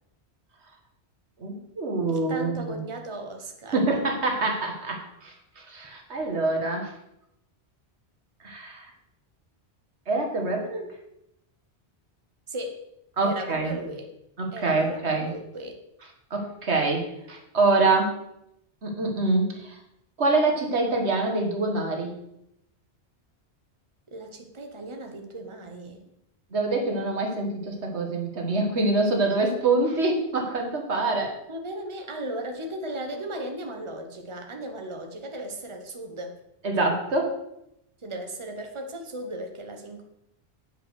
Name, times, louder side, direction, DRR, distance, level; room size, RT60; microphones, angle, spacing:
voice 1, 1.4-2.8 3.7-6.9 8.4-8.9 10.1-10.9 13.2-13.7 14.4-15.3 16.3-18.2 18.8-19.8 20.2-22.1 26.5-31.3 36.6-37.3, right 3 dB, 85° right, 2 dB, 1.9 m, -25 dB
voice 2, 2.1-4.0 12.5-12.8 13.2-14.1 14.5-15.8 24.1-26.0 31.5-36.4 38.0-40.0, right 1 dB, 30° right, 3 dB, 1.2 m, -36 dB
8.9 x 5.3 x 6.4 m, 0.80 s
omnidirectional pair, 1.1 m